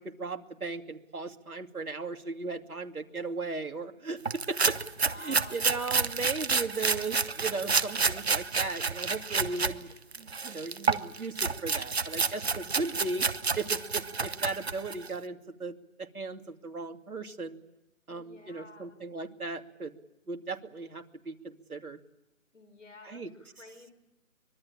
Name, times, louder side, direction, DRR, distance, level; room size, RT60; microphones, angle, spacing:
voice 1, 0.0-4.8 5.2-9.9 10.2-13.3 13.6-17.6 18.1-19.9 20.3-22.0 23.0-23.3, right 3 dB, 85° right, 5 dB, 2.7 m, -37 dB
sound 1, 4.2-9.7 10.1-15.1, right 4 dB, 50° right, 0.9 m, -29 dB
voice 2, 5.0-6.2 18.1-19.0 22.5-23.9, left 3 dB, 60° left, 10 dB, 4.8 m, -51 dB
25.0 x 21.5 x 8.8 m, 0.94 s
figure-of-eight pair, 175°, 42 cm